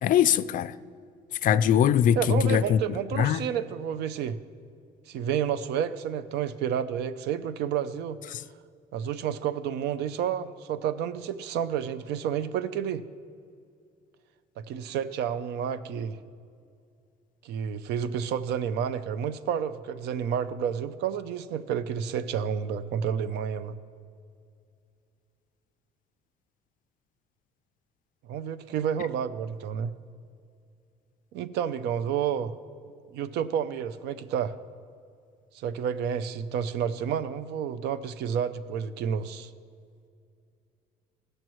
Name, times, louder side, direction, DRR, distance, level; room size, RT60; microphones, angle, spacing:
voice 1, 0.0-0.8 1.4-2.8 3.2-3.4 8.3-8.4, left 9 dB, 55° left, 0.4 m, -22 dB
voice 2, 2.2-4.4 5.1-8.2 8.9-13.0 14.6-16.2 17.4-23.8 28.3-29.9 31.3-32.6 33.1-34.6 35.5-39.5, right 8 dB, 80° right, 0.5 m, -30 dB
17.5 x 6.6 x 3.1 m
cardioid pair, 110°, 17 cm